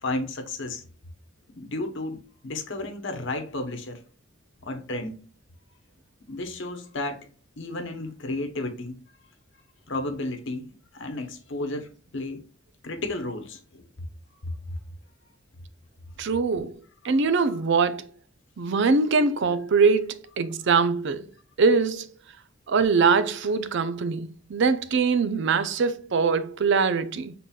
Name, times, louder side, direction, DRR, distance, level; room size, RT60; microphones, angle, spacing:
voice 1, 0.0-0.8 1.5-4.0 4.6-5.2 6.3-7.3 7.6-9.0 9.9-12.4 12.8-13.8 14.4-14.8 17.4-17.5, left 2 dB, 65° left, 0.9 m, -33 dB
voice 2, 16.2-16.7 17.0-18.0 18.6-21.3 21.6-22.1 22.7-27.3, right 4 dB, 60° right, 0.5 m, -22 dB
5.7 x 3.8 x 2.3 m
head